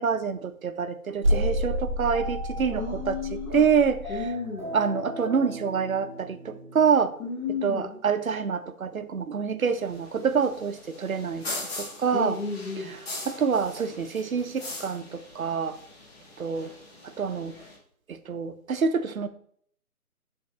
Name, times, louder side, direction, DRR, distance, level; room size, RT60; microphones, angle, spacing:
voice 1, 0.0-4.2 4.7-7.1 7.6-11.5 11.8-12.4 12.9-13.0 13.3-15.8 16.4-16.7 17.2-17.6 18.1-19.3, right 6 dB, 65° right, 10 dB, 0.7 m, -26 dB
sound 1, 1.2-4.3, equal, 20° right, 0.9 m, -29 dB
sound 2, 1.3-7.5, right 1 dB, 10° left, 1.5 m, -39 dB
voice 2, 2.7-3.6 4.1-4.7 7.2-8.0 12.1-12.9, left 4 dB, 65° left, -5 dB, 2.4 m, -32 dB
sound 3, 9.6-17.8, left 2 dB, 40° left, 1.6 m, -41 dB
11.0 x 3.8 x 3.0 m, 0.63 s
figure-of-eight pair, 155°, 45 cm